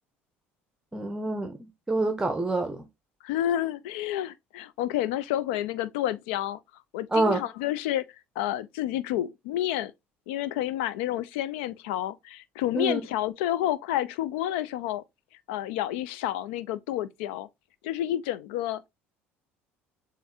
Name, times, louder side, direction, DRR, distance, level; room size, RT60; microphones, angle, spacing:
voice 1, 0.9-2.8 7.1-7.4 12.7-13.0, right 2 dB, 10° right, 0.7 m, -27 dB
voice 2, 3.2-6.6 6.9-8.0 8.4-9.9 10.3-15.0 15.5-17.5 17.8-18.9, left 12 dB, 75° left, 0.4 m, -29 dB
7.0 x 2.6 x 2.6 m
hypercardioid pair, 65°, 6 cm